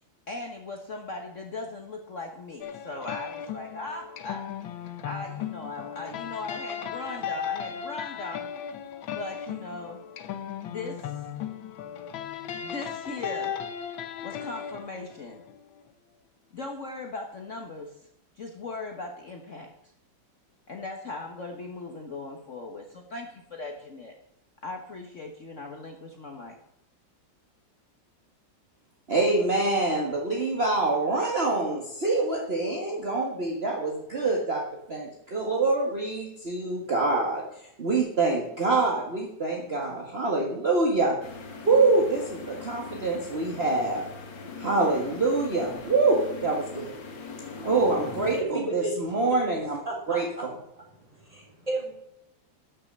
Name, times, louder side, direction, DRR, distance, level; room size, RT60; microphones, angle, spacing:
voice 1, 0.3-4.4 4.8-8.5 9.1-10.0 10.6-11.1 12.5-13.5 14.2-15.4 16.5-18.1 18.4-19.7 20.7-24.1 24.6-26.6, left 3 dB, 45° left, 3 dB, 1.4 m, -38 dB
sound 1, 2.6-15.8, left 8 dB, 90° left, 1.7 m, -36 dB
voice 2, 29.1-34.6 34.9-37.4 37.8-41.2 41.6-44.0 44.6-46.9 47.6-49.8 50.1-50.5, right 3 dB, 35° right, -1 dB, 1.8 m, -25 dB
sound 2, 41.2-48.4, left 4 dB, 70° left, 2.3 m, -40 dB
voice 3, 47.9-48.9 49.8-50.4 51.2-52.0, right 2 dB, 20° right, -3 dB, 4.3 m, -33 dB
13.0 x 6.7 x 6.6 m, 0.79 s
omnidirectional pair, 2.1 m